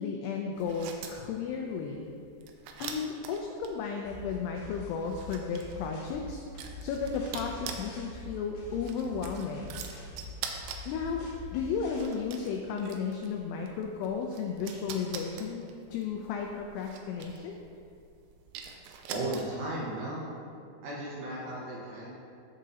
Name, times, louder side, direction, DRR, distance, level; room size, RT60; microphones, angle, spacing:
voice 1, 0.0-2.1 2.8-6.4 6.8-9.8 10.9-11.3 11.5-15.6 15.9-17.6, left 6 dB, 85° left, 1 dB, 2.3 m, -34 dB
sound 1, 0.5-19.8, right 7 dB, 85° right, 2.9 m, -45 dB
sound 2, 4.1-12.1, left 2 dB, 65° left, 2.8 m, -44 dB
voice 2, 19.1-20.2 20.8-22.1, right 1 dB, 70° right, -6 dB, 2.9 m, -35 dB
14.0 x 5.0 x 2.8 m, 2.5 s
omnidirectional pair, 5.2 m